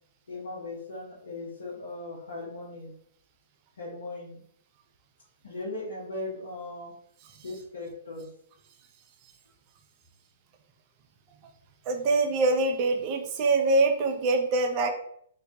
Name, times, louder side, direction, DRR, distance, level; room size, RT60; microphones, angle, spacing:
voice 1, 0.3-2.9 3.8-4.4 5.4-6.9 7.4-8.3, left 2 dB, 70° left, -5 dB, 0.8 m, -38 dB
voice 2, 11.9-14.9, right 3 dB, 35° right, 4 dB, 0.4 m, -24 dB
2.3 x 2.2 x 2.6 m, 0.67 s
figure-of-eight pair, 120°, 0 cm